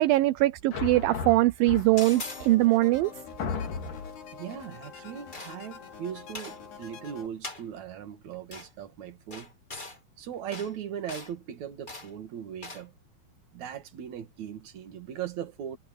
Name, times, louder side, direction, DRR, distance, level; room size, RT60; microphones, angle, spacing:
voice 1, 0.0-3.1, right 18 dB, 80° right, 2.2 m, -22 dB
sound 1, 0.7-2.2 2.9-3.0 3.4-4.2, left 5 dB, 55° left, 3.8 m, -34 dB
sound 2, 1.9-7.3, left 6 dB, 85° left, 6.5 m, -46 dB
sound 3, 2.0-2.5 5.3-5.8 6.3-6.6 7.4-7.6 8.5-8.7 9.3-10.0 10.5-10.7 11.1-11.3 11.9-12.1 12.6-12.8, left 2 dB, 20° left, 1.3 m, -40 dB
voice 2, 4.3-9.5 10.2-12.9 13.5-15.8, right 9 dB, 55° right, 2.9 m, -39 dB
omnidirectional pair, 4.6 m